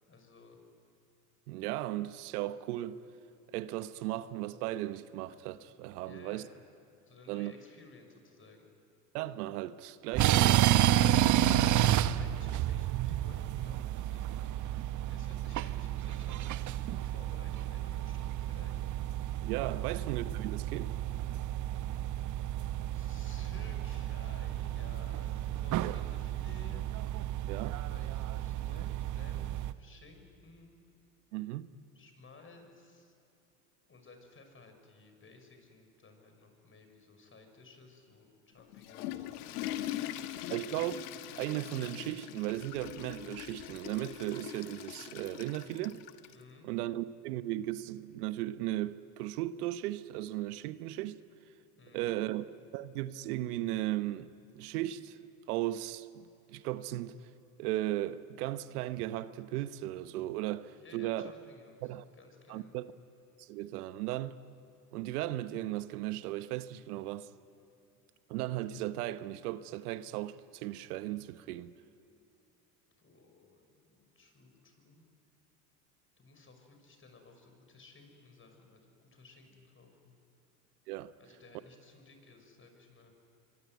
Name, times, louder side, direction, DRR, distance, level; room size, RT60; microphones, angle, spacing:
voice 1, 0.1-0.6 6.0-6.6 7.1-8.7 11.8-18.8 19.8-19.9 22.9-26.8 27.9-30.8 31.9-33.2 33.9-40.3 46.3-46.7 51.8-52.1 60.8-62.8 73.0-75.0 76.2-80.2 81.2-83.1, left 3 dB, 25° left, 6.3 m, -57 dB
voice 2, 1.5-3.0 3.5-6.4 7.3-7.5 9.1-10.8 19.4-20.9 25.8-25.9 27.5-27.8 31.3-31.7 40.5-41.0 41.3-46.0 46.6-51.2 51.9-52.4 52.7-54.3 54.5-55.2 55.5-57.1 57.6-61.3 61.8-62.0 62.5-62.9 63.4-64.4 64.9-67.3 68.3-71.7 80.9-81.1, right 15 dB, 75° right, 1.0 m, -36 dB
sound 1, 10.1-29.7, right 12 dB, 40° right, 0.8 m, -31 dB
Water / Toilet flush, 38.6-46.4, left 13 dB, 75° left, 1.6 m, -42 dB
26.0 x 24.0 x 9.5 m
hypercardioid pair, 85°, 46 cm